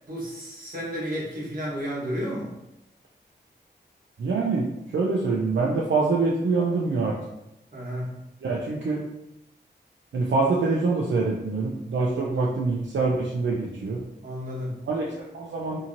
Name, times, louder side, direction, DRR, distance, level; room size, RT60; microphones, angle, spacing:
voice 1, 0.1-2.5 7.7-8.1 12.2-12.4 14.2-14.7, equal, 50° right, -6 dB, 1.2 m, -32 dB
voice 2, 4.2-7.2 8.4-9.0 10.1-14.0 14.9-15.8, right 3 dB, 80° right, -3 dB, 0.4 m, -25 dB
2.8 x 2.7 x 2.6 m, 0.87 s
wide cardioid pair, 110°, 19 cm